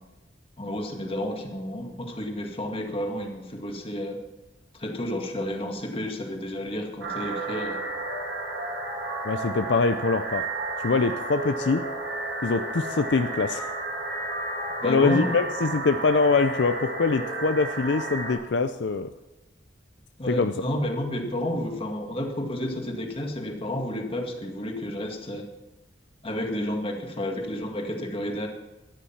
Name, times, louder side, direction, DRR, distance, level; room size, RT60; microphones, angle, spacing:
voice 1, 0.6-4.2 4.7-7.8 14.8-15.4 20.2-25.5 26.2-28.5, left 1 dB, 30° left, 2 dB, 2.0 m, -31 dB
sound 1, 7.0-18.3, right 2 dB, 85° right, 2.9 m, -32 dB
voice 2, 9.2-10.5 10.8-11.8 12.4-13.7 14.8-19.1 20.3-20.5, left 4 dB, 70° left, 9 dB, 0.5 m, -24 dB
13.0 x 10.0 x 5.8 m, 1.0 s
head